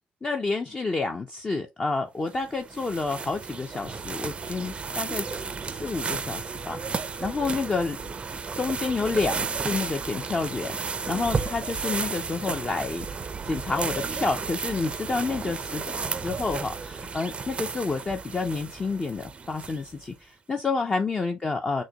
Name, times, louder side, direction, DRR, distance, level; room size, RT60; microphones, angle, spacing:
voice 1, 0.2-8.0 8.6-13.1 13.5-21.8, left 4 dB, 30° left, 0.5 m, -29 dB
sound 1, 2.3-20.0, right 5 dB, 35° right, 0.4 m, -33 dB
6.2 x 2.2 x 2.9 m
cardioid pair, 105°, 3 cm